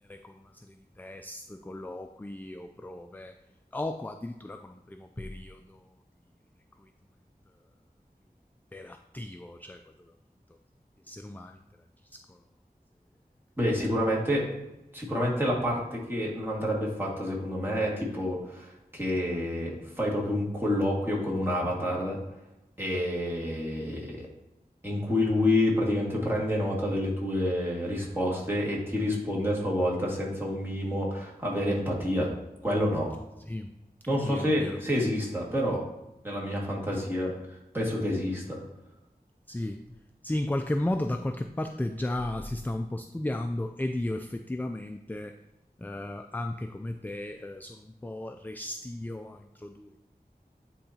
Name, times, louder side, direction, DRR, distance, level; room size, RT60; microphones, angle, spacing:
voice 1, 0.1-3.3 3.7-5.8 8.7-9.8 11.1-11.6 12.1-12.4 33.5-33.7 34.3-34.8 36.9-37.0 39.5-39.8 40.2-45.3 45.8-50.0, left 1 dB, 10° left, 6 dB, 0.3 m, -35 dB
voice 2, 13.6-14.4 14.9-22.2 22.8-24.1 24.8-32.3 32.6-33.1 34.1-35.8 36.2-37.3 37.7-38.6, left 1 dB, 15° right, -4 dB, 1.9 m, -28 dB
10.0 x 3.8 x 2.8 m, 0.95 s
wide cardioid pair, 50°, 16 cm